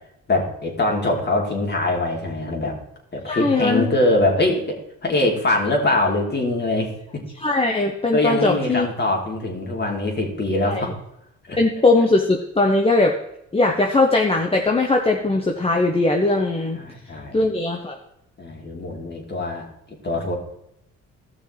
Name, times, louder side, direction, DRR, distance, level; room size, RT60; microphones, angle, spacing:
voice 1, 0.3-2.7 3.1-7.2 8.1-10.9 11.5-11.6 16.7-17.4 18.4-19.7 20.0-20.4, left 2 dB, 35° left, -1 dB, 3.1 m, -23 dB
voice 2, 3.3-3.9 7.4-8.9 10.7-10.8 11.6-13.1 13.5-16.8 17.3-18.0, left 2 dB, 20° left, 1 dB, 1.1 m, -19 dB
15.5 x 6.2 x 3.4 m, 0.79 s
cardioid pair, 90°, 30 cm